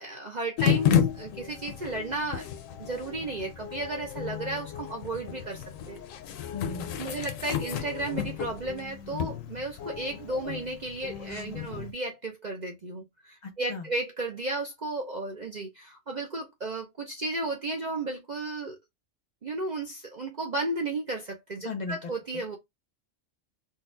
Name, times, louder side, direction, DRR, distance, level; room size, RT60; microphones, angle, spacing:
voice 1, 0.0-2.5 2.8-6.0 7.0-18.8 19.4-22.6, right 2 dB, 45° right, 0.6 m, -34 dB
sound 1, 0.6-11.9, left 9 dB, 80° left, 1.0 m, -32 dB
voice 2, 6.5-7.2 13.4-13.9 21.6-22.0 22.3-22.4, left 4 dB, 40° left, 0.8 m, -37 dB
4.0 x 2.3 x 2.5 m
omnidirectional pair, 1.4 m